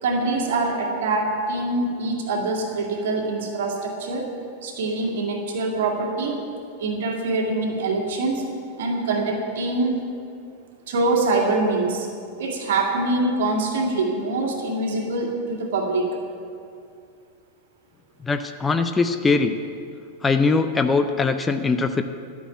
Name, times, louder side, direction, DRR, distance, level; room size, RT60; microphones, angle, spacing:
voice 1, 0.0-4.3 4.6-6.4 6.8-8.4 8.8-10.0 10.9-12.1 12.4-16.1, right 2 dB, 55° right, 1 dB, 2.0 m, -24 dB
voice 2, 18.2-19.6 20.2-22.0, left 4 dB, 15° left, 8 dB, 0.5 m, -21 dB
12.5 x 6.2 x 9.0 m, 2.4 s
figure-of-eight pair, 90°, 0 cm